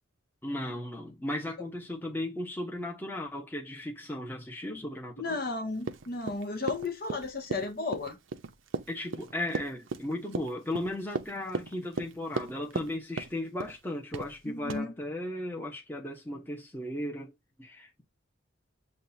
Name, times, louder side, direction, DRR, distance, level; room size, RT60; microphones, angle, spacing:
voice 1, 0.4-5.4 8.9-18.0, left 1 dB, 10° left, 1.0 m, -36 dB
voice 2, 5.2-8.2 14.4-14.9, left 3 dB, 45° left, 0.9 m, -34 dB
Run, 5.8-12.9 13.2-13.8 14.1-14.4 14.7-14.8, right 4 dB, 75° right, 0.6 m, -36 dB
7.5 x 2.5 x 2.7 m
head